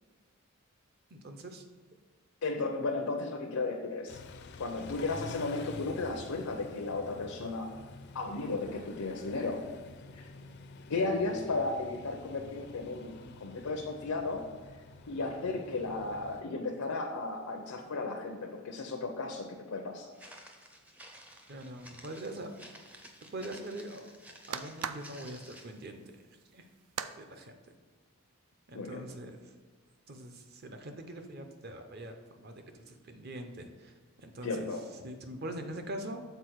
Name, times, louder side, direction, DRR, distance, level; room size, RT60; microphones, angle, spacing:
voice 1, 1.1-1.7 21.5-22.5 23.3-24.1 24.5-26.0 26.5-26.7 27.2-27.5 28.7-29.5 30.1-33.9 34.2-34.7 35.0-36.2, right 1 dB, 45° right, 6 dB, 0.6 m, -43 dB
voice 2, 2.4-4.2 4.6-7.7 8.1-9.7 10.1-10.3 10.9-14.5 15.1-20.1 28.7-29.1 34.4-34.9, left 3 dB, 90° left, 2 dB, 0.6 m, -34 dB
Car / Idling / Accelerating revving vroom, 4.1-16.4, left 3 dB, 50° left, 0.4 m, -49 dB
Walk footsteps, 20.1-25.8, equal, 5° right, 0.4 m, -53 dB
sound 1, 22.0-27.2, right 8 dB, 85° right, 0.4 m, -44 dB
6.8 x 4.1 x 4.6 m, 1.4 s
head